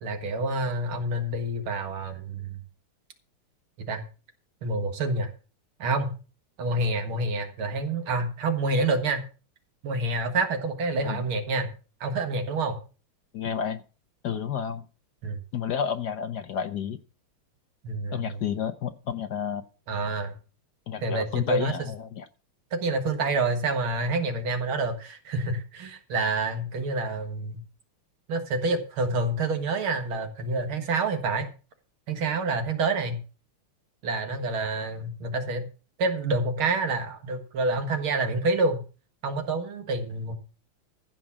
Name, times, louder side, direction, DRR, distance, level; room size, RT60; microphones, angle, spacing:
voice 1, 0.0-2.6 3.8-4.0 4.6-5.3 5.8-6.2 6.6-9.2 9.8-11.7 12.0-12.8 15.2-15.4 17.8-18.4 19.9-20.3 21.0-21.7 22.7-27.6 28.3-31.5 32.1-33.2 34.0-35.7 36.0-38.8 39.2-40.3, right 2 dB, 75° right, 7 dB, 2.4 m, -28 dB
voice 2, 13.3-13.8 14.2-14.8 15.5-17.0 18.1-19.6 20.9-22.3, left 8 dB, 60° left, 9 dB, 1.2 m, -31 dB
15.0 x 5.2 x 7.2 m, 0.36 s
omnidirectional pair, 2.4 m